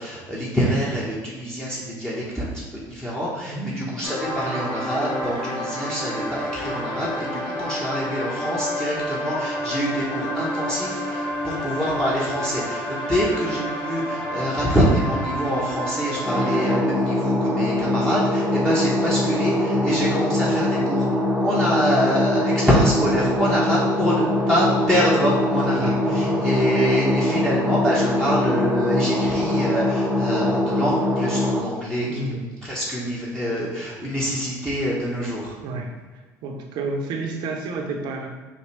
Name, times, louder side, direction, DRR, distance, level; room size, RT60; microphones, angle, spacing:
voice 1, 0.0-32.3 32.6-35.6, equal, 5° left, -8 dB, 1.1 m, -25 dB
voice 2, 3.5-3.9 25.8-26.4 32.1-32.7 35.6-35.9 36.4-38.3, right 3 dB, 65° right, 3 dB, 0.7 m, -30 dB
sound 1, 4.0-16.8, left 1 dB, 55° left, 1.4 m, -29 dB
sound 2, 16.2-31.6, left 1 dB, 10° right, 0.7 m, -22 dB
5.3 x 2.2 x 3.3 m, 1.3 s
hypercardioid pair, 75°, 8 cm